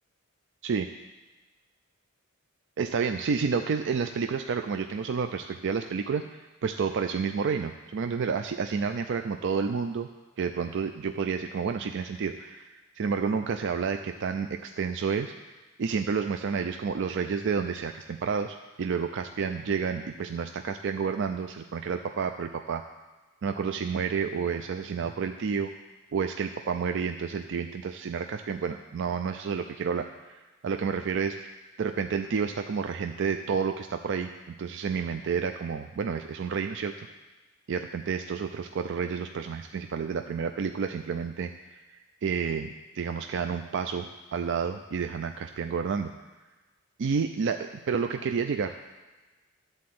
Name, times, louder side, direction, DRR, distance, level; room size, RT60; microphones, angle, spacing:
voice 1, 2.8-6.2 6.6-10.1 10.4-15.3 15.8-22.8 23.4-25.7 26.1-31.5 31.8-36.9 37.7-41.5 41.9-46.1 47.0-48.9, right 6 dB, 60° right, 7 dB, 0.4 m, -30 dB
11.5 x 4.2 x 7.7 m, 1.2 s
head